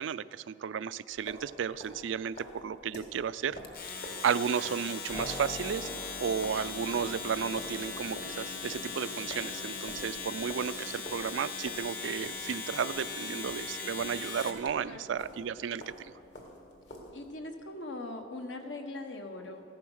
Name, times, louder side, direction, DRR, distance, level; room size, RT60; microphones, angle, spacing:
voice 1, 0.0-3.6 4.2-5.9 6.2-16.1, right 7 dB, 80° right, 16 dB, 0.4 m, -33 dB
sound 1, 1.1-14.9 15.2-17.4, equal, 65° left, 2.1 m, -48 dB
Domestic sounds home sounds, 3.6-14.7, left 5 dB, 50° left, 1.2 m, -40 dB
Keyboard (musical), 5.1-17.9, left 2 dB, 25° left, 0.5 m, -49 dB
voice 2, 14.8-15.2 17.1-19.6, left 2 dB, 80° left, 5 dB, 1.2 m, -41 dB
14.5 x 10.5 x 6.3 m, 2.7 s
head